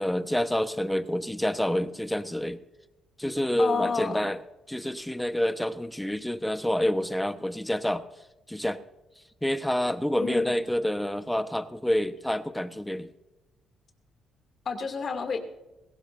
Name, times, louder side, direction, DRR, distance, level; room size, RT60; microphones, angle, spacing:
voice 1, 0.0-2.6 3.2-4.4 4.7-8.0 8.5-8.8 9.4-13.1, left 1 dB, 5° left, 11 dB, 1.0 m, -28 dB
voice 2, 3.6-4.2 10.2-10.5 14.7-15.4, left 5 dB, 45° left, 4 dB, 2.5 m, -30 dB
21.0 x 18.0 x 2.6 m, 1.0 s
cardioid pair, 90°, 0 cm